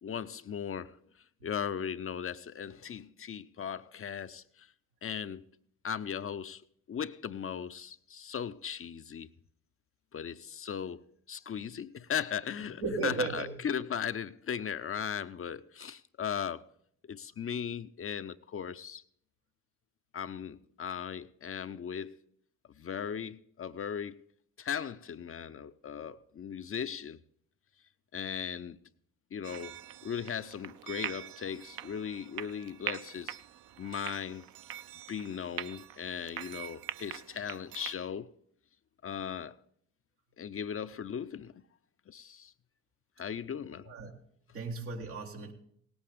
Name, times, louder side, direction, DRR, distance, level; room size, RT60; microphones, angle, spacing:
voice 1, 0.0-1.0 1.4-4.7 5.0-5.4 5.8-6.6 6.9-9.3 10.1-16.7 17.1-19.0 20.1-22.2 22.8-24.2 24.6-27.2 28.1-28.8 29.3-33.4 33.8-34.4 35.1-38.3 39.0-39.6 40.4-41.5 42.1-42.5 43.2-43.9, left 7 dB, 30° left, 0.6 m, -38 dB
voice 2, 12.8-13.6 43.8-44.2 44.5-45.5, right 4 dB, 85° right, 1.8 m, -35 dB
sound 1, 29.4-37.9, right 12 dB, 50° right, 0.6 m, -43 dB
18.5 x 8.7 x 3.5 m
hypercardioid pair, 45°, 43 cm